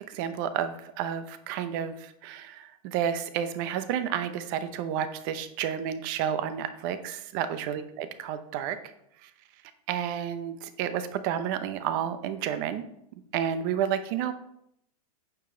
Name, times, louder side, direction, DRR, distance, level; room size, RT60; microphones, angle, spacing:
voice 1, 0.1-8.8 9.2-9.3 9.9-12.9 13.3-14.3, right 9 dB, 35° right, 11 dB, 0.7 m, -31 dB
8.9 x 7.1 x 3.8 m, 0.75 s
supercardioid pair, 165°, 19 cm